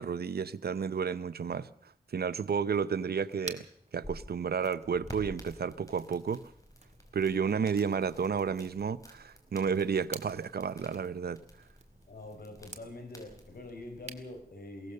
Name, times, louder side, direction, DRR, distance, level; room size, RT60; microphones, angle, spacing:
voice 1, 0.0-1.7 2.1-3.6 3.9-6.4 7.1-11.4, right 6 dB, 85° right, 14 dB, 0.8 m, -31 dB
sound 1, 2.3-14.4, right 3 dB, 45° right, 2.1 m, -52 dB
sound 2, 3.8-14.4, equal, 20° left, 5.4 m, -52 dB
voice 2, 12.1-14.9, left 2 dB, 75° left, 6 dB, 5.0 m, -45 dB
22.5 x 18.0 x 6.7 m, 0.67 s
wide cardioid pair, 65°, 16 cm